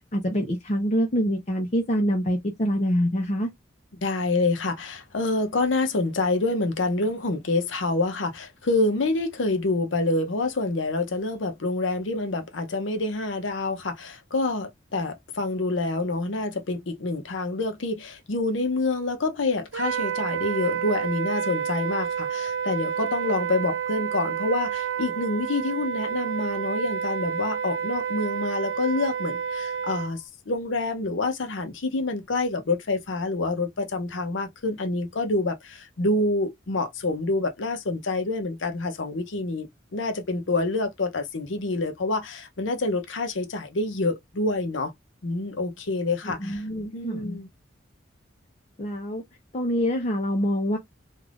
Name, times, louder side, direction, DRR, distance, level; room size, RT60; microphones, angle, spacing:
voice 1, 0.1-3.5 46.2-47.4 48.8-49.2 49.5-50.8, equal, 40° left, 0.7 m, -25 dB
voice 2, 4.0-39.7 39.9-44.9 45.2-46.7 46.9-47.5, left 2 dB, 80° left, 0.7 m, -27 dB
Wind instrument woodwind instrument, 19.7-30.1, right 8 dB, 85° right, 0.6 m, -29 dB
3.4 x 2.4 x 2.4 m
head